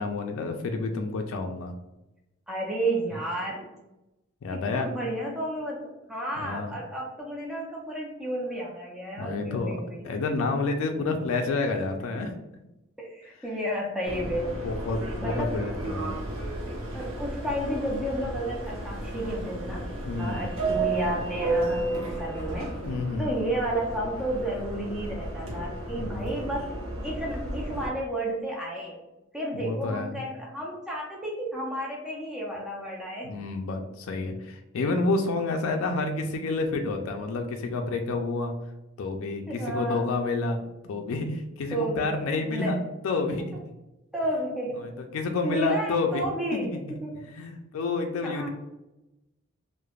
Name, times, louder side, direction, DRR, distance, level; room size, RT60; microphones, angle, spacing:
voice 1, 0.0-1.7 4.4-4.9 6.4-6.7 9.2-9.8 10.0-12.3 14.6-16.1 20.1-20.4 22.9-23.3 25.4-25.6 25.9-26.3 29.5-30.2 33.2-38.5 39.0-43.5 44.8-46.2 46.5-46.8 47.1-48.5, left 3 dB, 80° left, 4 dB, 0.3 m, -29 dB
voice 2, 2.5-3.7 4.5-10.0 12.1-12.2 13.0-14.6 15.2-15.5 16.9-19.9 20.2-22.7 23.2-29.0 29.3-33.3 39.5-40.1 41.7-42.8 44.1-44.9 45.4-47.3 48.2-48.5, right 1 dB, 5° right, -4 dB, 0.4 m, -32 dB
Subway metro underground, 14.1-27.9, right 2 dB, 80° right, 0.6 m, -33 dB
3.1 x 2.0 x 2.3 m, 0.97 s
head